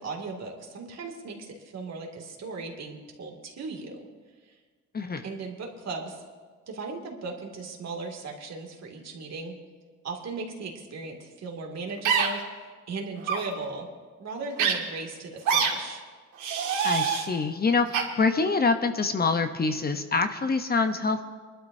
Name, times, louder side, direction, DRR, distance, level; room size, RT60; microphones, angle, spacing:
voice 1, 0.0-4.0 5.2-6.2 6.7-9.5 10.0-13.9 14.2-16.0, right 3 dB, 60° right, 1 dB, 2.5 m, -37 dB
sound 1, 12.0-12.3 13.2-13.4 14.6-14.7 15.4-15.7 16.4-17.2 17.9-18.0, right 7 dB, 80° right, 2.0 m, -24 dB
voice 2, 16.8-21.2, left 4 dB, 30° left, 8 dB, 0.8 m, -25 dB
23.5 x 12.0 x 2.7 m, 1.5 s
cardioid pair, 90°, 30 cm